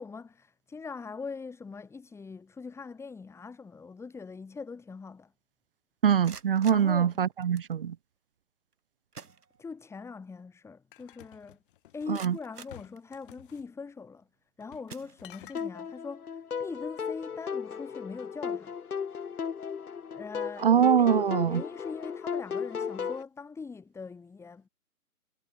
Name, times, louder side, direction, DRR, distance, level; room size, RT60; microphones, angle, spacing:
voice 1, 0.0-5.3 6.7-7.2 9.6-11.6 11.9-14.3 14.6-18.8 20.1-20.7 21.0-24.7, left 4 dB, 5° left, 5.3 m, -42 dB
voice 2, 6.0-7.9 12.1-12.3 20.6-21.6, right 8 dB, 40° right, 0.6 m, -23 dB
sound 1, 6.2-7.8 8.7-8.8 9.1-10.0 10.4-10.5 11.0-11.1 11.7-13.5 14.2-14.4 14.8-15.7, right 5 dB, 80° right, 3.4 m, -50 dB
sound 2, 10.9-12.2 12.7-13.7 14.6-14.9 15.2-15.7, left 14 dB, 35° left, 7.2 m, -52 dB
sound 3, 15.5-23.2, left 6 dB, 70° left, 1.7 m, -35 dB
hypercardioid pair, 145°, 45 cm